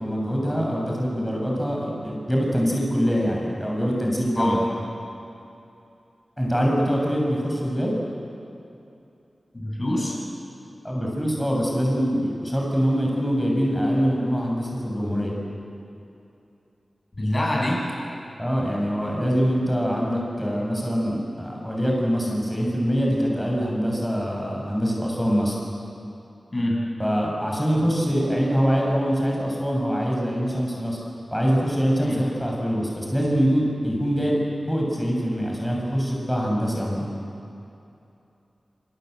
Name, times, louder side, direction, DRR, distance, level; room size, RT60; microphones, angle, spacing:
voice 1, 0.0-4.6 6.4-7.9 10.8-15.3 18.4-25.5 27.0-31.0 31.3-34.4 34.7-37.1, equal, 5° left, -2 dB, 6.7 m, -24 dB
voice 2, 9.5-10.2 17.2-17.9 26.5-26.9 32.0-32.3, left 1 dB, 35° left, -1 dB, 7.5 m, -25 dB
27.0 x 26.5 x 8.1 m, 2.8 s
wide cardioid pair, 75°, 0 cm